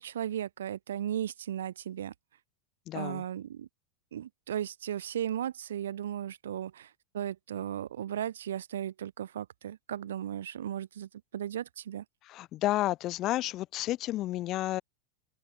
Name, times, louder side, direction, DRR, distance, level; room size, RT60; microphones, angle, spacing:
voice 1, 0.0-2.1 2.9-3.7 4.1-12.0, right 10 dB, 70° right, 1.1 m, -36 dB
voice 2, 2.9-3.2 12.2-14.8, left 15 dB, 40° left, 0.9 m, -31 dB
open air
figure-of-eight pair, 90°, 0 cm